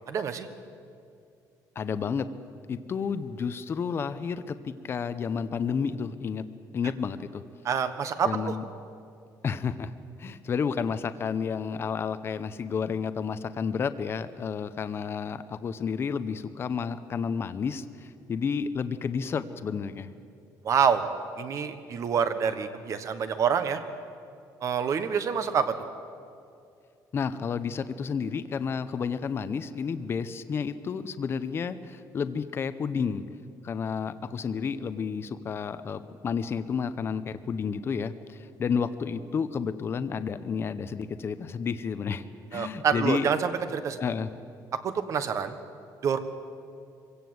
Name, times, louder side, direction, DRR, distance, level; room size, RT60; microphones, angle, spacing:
voice 1, 0.1-0.5 7.6-8.5 20.6-21.1 21.4-23.8 24.6-25.7 42.5-44.0 44.8-45.6 46.0-46.2, right 7 dB, 45° right, 10 dB, 1.3 m, -27 dB
voice 2, 1.8-2.3 2.7-6.4 6.7-7.4 8.2-8.6 9.4-9.9 10.2-20.1 27.1-33.2 33.6-42.2 42.5-43.3 44.0-44.3, left 6 dB, 35° left, 12 dB, 0.8 m, -31 dB
24.5 x 16.5 x 7.9 m, 2.5 s
cardioid pair, 155°, 7 cm